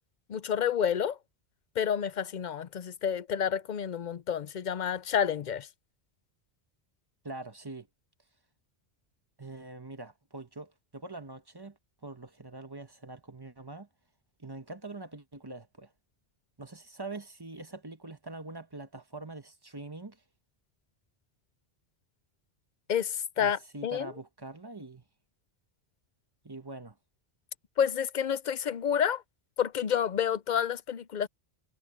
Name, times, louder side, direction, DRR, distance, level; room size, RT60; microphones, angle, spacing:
voice 1, 0.3-1.2 1.8-5.7 22.9-24.1 27.8-29.2 29.6-31.3, left 8 dB, 55° left, 0.6 m, -29 dB
voice 2, 7.2-7.9 9.4-13.9 14.4-15.9 16.6-20.2 23.4-25.0 26.4-26.9, right 2 dB, 20° right, 1.1 m, -44 dB
omnidirectional pair, 1.1 m